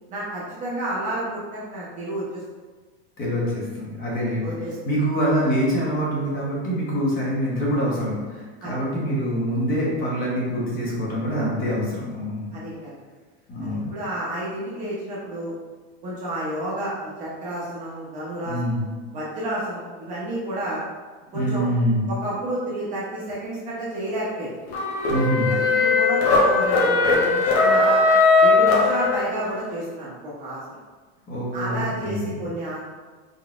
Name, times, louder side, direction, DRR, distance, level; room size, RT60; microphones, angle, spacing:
voice 1, 0.1-2.4 4.4-4.8 8.6-8.8 12.5-13.0 13.6-15.5 16.0-16.9 17.2-18.8 19.1-20.8 21.3-21.7 22.1-24.5 25.5-28.0 28.4-30.6 31.5-32.8, right 1 dB, 25° right, -7 dB, 0.7 m, -30 dB
voice 2, 3.2-4.5 4.8-12.5 13.5-13.9 18.5-18.8 21.3-22.1 25.1-25.5 31.3-32.4, equal, 25° left, -5 dB, 1.0 m, -25 dB
sound 1, 24.7-29.5, left 3 dB, 85° left, 1.2 m, -19 dB
3.9 x 3.9 x 2.4 m, 1.3 s
supercardioid pair, 170°, 32 cm